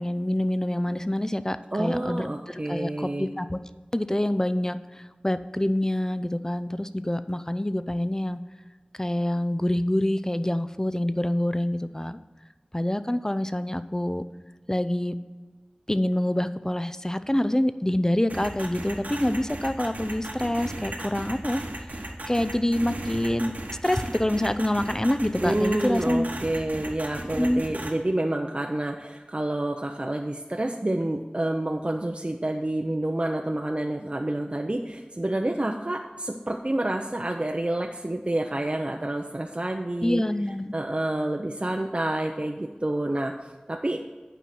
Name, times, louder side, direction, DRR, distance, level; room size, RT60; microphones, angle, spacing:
voice 1, 0.0-3.6 3.9-4.8 5.2-8.4 9.0-12.2 12.7-14.2 14.7-15.1 15.9-21.6 22.3-23.5 23.8-26.4 27.4-27.6 40.0-40.7, left 1 dB, 20° left, 12 dB, 0.5 m, -26 dB
voice 2, 1.7-3.3 25.4-40.2 40.7-44.1, right 1 dB, 45° right, 2 dB, 0.6 m, -28 dB
sound 1, 18.3-27.9, right 1 dB, 80° right, 1.4 m, -35 dB
9.1 x 5.5 x 6.0 m, 1.3 s
wide cardioid pair, 40°, 3 cm